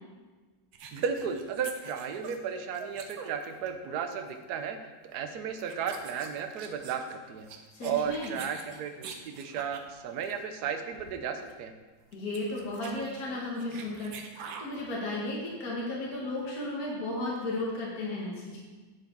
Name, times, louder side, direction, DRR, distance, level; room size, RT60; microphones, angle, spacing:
sound 1, 0.7-3.9 4.1-4.4 5.1-5.3 5.6-9.9 10.2-10.4 10.7-10.8 10.9-11.2 11.5-11.6 12.0-14.8, right 6 dB, 90° right, 1.7 m, -46 dB
voice 1, 0.9-4.8 5.0-7.5 7.8-11.7, right 7 dB, 60° right, 6 dB, 1.3 m, -34 dB
voice 2, 7.7-8.3 12.1-18.6, left 2 dB, 50° left, -5 dB, 2.2 m, -34 dB
10.5 x 6.9 x 4.7 m, 1.3 s
omnidirectional pair, 2.1 m